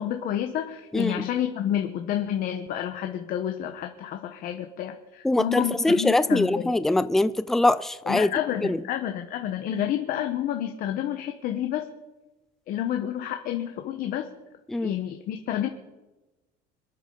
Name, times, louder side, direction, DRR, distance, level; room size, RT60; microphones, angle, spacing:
voice 1, 0.0-6.7 8.0-11.9 12.7-14.3 14.8-15.7, left 11 dB, 55° left, 1.1 m, -29 dB
voice 2, 0.9-1.2 5.2-8.3 8.6-8.8 14.7-14.9, left 2 dB, ahead, 0.3 m, -23 dB
27.0 x 9.0 x 3.9 m
cardioid pair, 155°, 18 cm